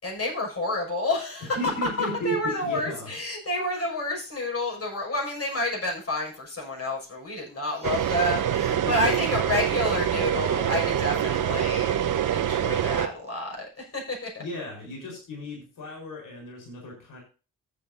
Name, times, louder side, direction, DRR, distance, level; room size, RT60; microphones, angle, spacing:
voice 1, 0.0-12.0 12.3-14.4, left 2 dB, 40° left, 0 dB, 6.2 m, -29 dB
voice 2, 1.5-3.1 14.4-17.2, equal, 60° left, 0 dB, 4.4 m, -35 dB
sound 1, 7.8-13.1, right 10 dB, 60° right, 1.2 m, -25 dB
14.0 x 8.6 x 2.7 m, 0.33 s
hypercardioid pair, 45°, 36 cm